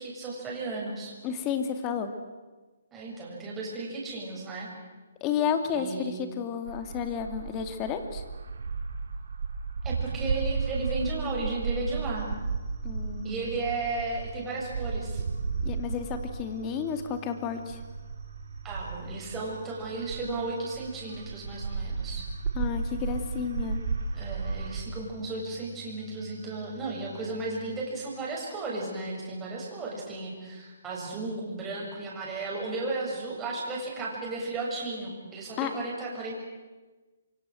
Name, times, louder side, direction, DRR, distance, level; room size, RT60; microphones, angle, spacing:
voice 1, 0.0-1.1 2.9-4.7 5.7-6.2 9.8-12.3 13.2-15.2 18.6-22.3 24.1-36.4, right 3 dB, 10° right, -4 dB, 7.4 m, -34 dB
voice 2, 1.2-2.1 5.2-8.2 12.8-13.4 15.6-17.8 22.5-23.8 35.6-35.7, left 7 dB, 20° left, 7 dB, 2.5 m, -31 dB
sound 1, 6.7-20.5 20.7-24.8, right 4 dB, 70° right, 3.6 m, -34 dB
sound 2, 12.1-27.8, right 7 dB, 50° right, 3.3 m, -49 dB
28.0 x 24.5 x 8.0 m, 1.3 s
hypercardioid pair, 160°, 0 cm